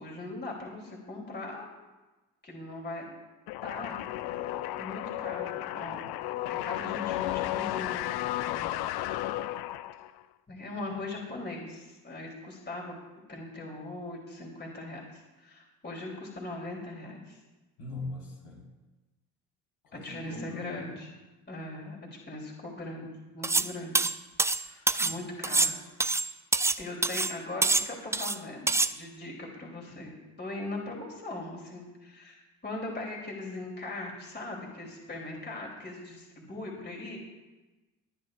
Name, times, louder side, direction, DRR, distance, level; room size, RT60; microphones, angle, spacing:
voice 1, 0.0-1.7 2.4-3.0 3.6-4.0 4.7-8.1 8.5-8.9 10.5-13.0 13.3-17.4 19.9-21.1 21.5-23.1 23.3-24.0 24.4-26.2 26.8-37.2, left 2 dB, 25° left, -1 dB, 3.3 m, -40 dB
sound 1, 3.5-10.2, left 14 dB, 60° left, 0.6 m, -33 dB
voice 2, 17.8-18.6 19.8-20.9, left 3 dB, 75° left, -4 dB, 4.8 m, -40 dB
sound 2, 23.4-23.7 23.9-25.2 25.4-26.8 27.0-27.3 27.6-28.4 28.7-28.9, right 3 dB, 5° right, 0.4 m, -26 dB
24.0 x 9.1 x 2.5 m, 1.1 s
hypercardioid pair, 55°, 45 cm